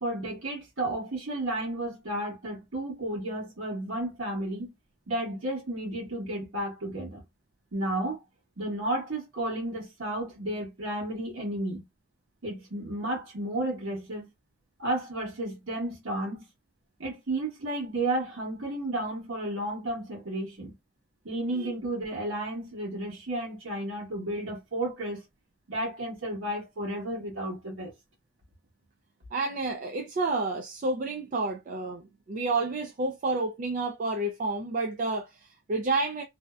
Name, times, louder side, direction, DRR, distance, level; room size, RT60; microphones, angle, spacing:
voice 1, 0.0-4.7 5.1-7.2 7.7-8.2 8.6-11.8 12.4-14.3 14.8-16.4 17.0-20.7 21.2-25.2 25.7-27.9, right 1 dB, 65° right, 1.2 m, -32 dB
voice 2, 29.3-36.2, right 3 dB, 40° right, 0.3 m, -30 dB
2.6 x 2.0 x 2.3 m
head